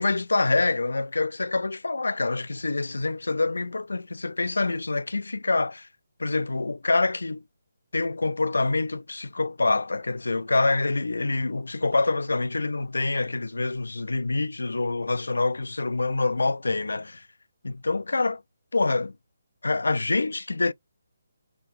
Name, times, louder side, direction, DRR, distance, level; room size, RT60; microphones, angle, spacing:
voice 1, 0.0-5.9 6.2-7.4 7.9-17.3 17.6-18.4 18.7-19.1 19.6-20.7, left 3 dB, 85° left, 0.3 m, -26 dB
2.8 x 2.4 x 3.2 m
figure-of-eight pair, 150°, 0 cm